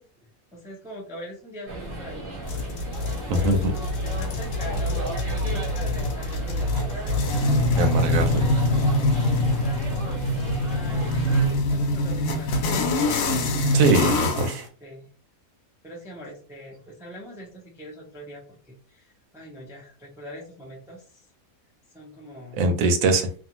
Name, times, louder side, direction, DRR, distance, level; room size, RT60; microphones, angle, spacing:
voice 1, 0.0-2.7 3.4-3.7 4.0-7.4 7.9-11.1 11.7-13.0 14.3-15.1 15.8-21.3 21.9-22.7, equal, 5° right, -3 dB, 0.3 m, -43 dB
sound 1, 1.7-11.6, right 1 dB, 25° right, 0.8 m, -35 dB
sound 2, 2.5-14.6, left 1 dB, 75° left, 0.9 m, -24 dB
voice 2, 3.3-3.7 7.8-8.5 13.7-14.6 22.6-23.4, right 2 dB, 75° right, 5 dB, 1.0 m, -22 dB
2.6 x 2.3 x 2.9 m, 0.42 s
omnidirectional pair, 1.5 m